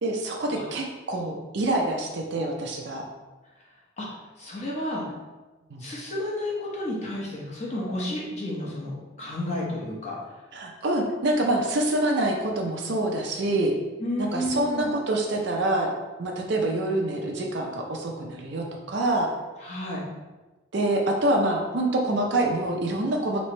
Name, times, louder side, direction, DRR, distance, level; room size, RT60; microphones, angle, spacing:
voice 1, 0.0-3.0 5.7-5.8 10.5-13.7 14.2-15.9 16.2-19.3 20.7-23.4, right 1 dB, 55° right, 1 dB, 0.5 m, -26 dB
voice 2, 4.4-5.0 5.8-10.2 14.0-14.9 19.6-20.0, left 1 dB, 35° left, -5 dB, 1.0 m, -31 dB
3.2 x 2.9 x 4.2 m, 1.2 s
head